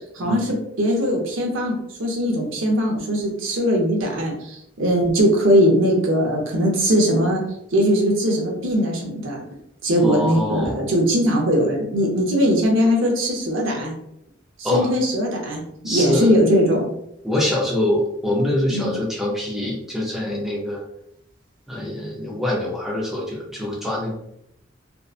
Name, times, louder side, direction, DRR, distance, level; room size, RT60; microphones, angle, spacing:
voice 1, 0.0-7.4 7.7-9.4 9.8-13.9 14.6-16.9 18.7-18.9, equal, 90° right, 0 dB, 0.7 m, -20 dB
voice 2, 10.0-10.9 14.6-14.9 15.8-16.4 17.2-20.8 21.7-24.1, left 1 dB, ahead, -4 dB, 0.4 m, -24 dB
2.6 x 2.2 x 2.3 m, 0.78 s
head